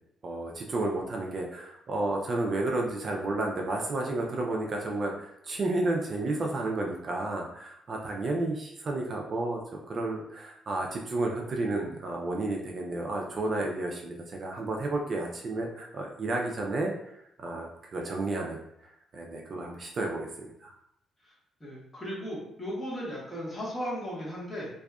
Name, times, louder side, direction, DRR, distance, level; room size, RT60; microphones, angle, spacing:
voice 1, 0.2-9.6 9.9-20.7, right 2 dB, 45° right, 0 dB, 0.3 m, -32 dB
voice 2, 21.6-24.7, equal, 20° left, -6 dB, 1.1 m, -36 dB
2.6 x 2.3 x 2.3 m, 0.78 s
cardioid pair, 90°, 0 cm